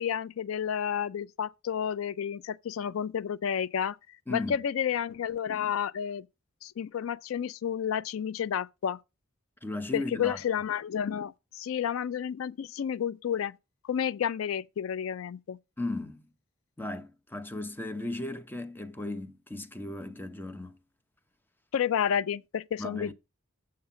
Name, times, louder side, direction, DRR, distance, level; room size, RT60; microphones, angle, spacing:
voice 1, 0.0-4.0 4.3-6.3 6.6-9.0 9.9-13.6 13.8-15.6 21.7-23.1, left 8 dB, 85° left, 0.4 m, -31 dB
voice 2, 9.6-10.4 15.8-16.2 16.8-20.8 22.8-23.1, left 2 dB, 10° left, 0.7 m, -36 dB
7.6 x 5.5 x 5.7 m
head